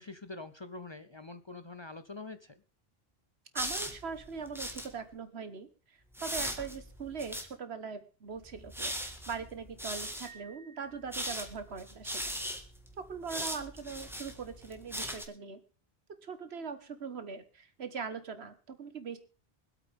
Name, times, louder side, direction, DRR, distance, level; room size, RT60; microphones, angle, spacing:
voice 1, 0.0-2.5, left 3 dB, 30° left, 11 dB, 0.6 m, -45 dB
sound 1, 3.5-4.9 6.1-7.5 8.4-10.3 11.0-15.2, equal, ahead, 1.5 m, -39 dB
voice 2, 3.5-8.9 9.3-12.4 13.0-15.6 16.2-19.2, right 5 dB, 80° right, 10 dB, 1.6 m, -41 dB
Piano, 10.3-11.7, right 5 dB, 55° right, 1.4 m, -57 dB
24.0 x 8.4 x 3.5 m, 0.35 s
omnidirectional pair, 1.1 m